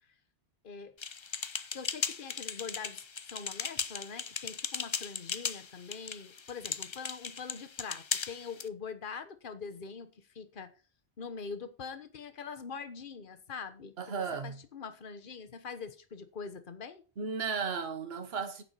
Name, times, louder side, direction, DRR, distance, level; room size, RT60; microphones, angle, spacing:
sound 1, 1.0-8.7, left 5 dB, 35° left, 0.5 m, -37 dB
voice 1, 1.7-3.0 3.3-10.7 11.2-17.0, left 5 dB, 50° left, 1.3 m, -43 dB
voice 2, 14.0-14.6 17.2-18.6, right 5 dB, 65° right, 1.5 m, -35 dB
9.9 x 7.0 x 5.7 m
omnidirectional pair, 1.1 m